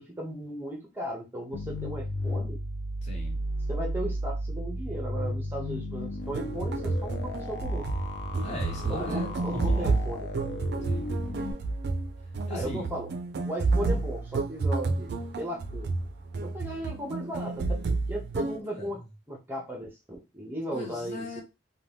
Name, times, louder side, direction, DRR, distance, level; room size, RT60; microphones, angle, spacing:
voice 1, 0.0-2.6 3.7-7.9 8.9-10.3 12.5-13.1 13.5-15.1 15.4-15.9 16.4-19.0 19.3-21.4, right 1 dB, 10° right, 0.5 m, -36 dB
sound 1, 1.5-11.5, equal, 75° left, 0.4 m, -34 dB
voice 2, 3.0-3.4 8.4-10.0 10.9-11.1 12.5-12.9 18.7-18.9 20.7-21.4, left 1 dB, 40° left, 1.0 m, -38 dB
sound 2, 6.2-18.6, right 3 dB, 60° right, 0.3 m, -30 dB
2.6 x 2.2 x 3.3 m
head